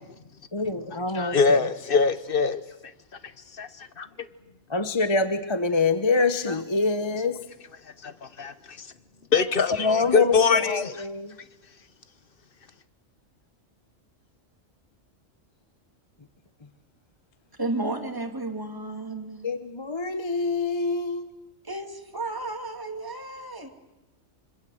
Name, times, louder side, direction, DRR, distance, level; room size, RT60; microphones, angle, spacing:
voice 1, 0.5-1.7 4.7-7.4 9.8-11.3 19.4-21.3, left 4 dB, 25° left, 0.9 m, -25 dB
voice 2, 1.1-2.6 3.5-4.3 6.5-6.6 8.0-8.9 9.3-11.0, left 5 dB, 45° left, 1.3 m, -24 dB
voice 3, 17.6-19.4 21.6-23.7, right 2 dB, 15° right, 2.6 m, -33 dB
25.5 x 25.5 x 7.9 m
omnidirectional pair, 1.3 m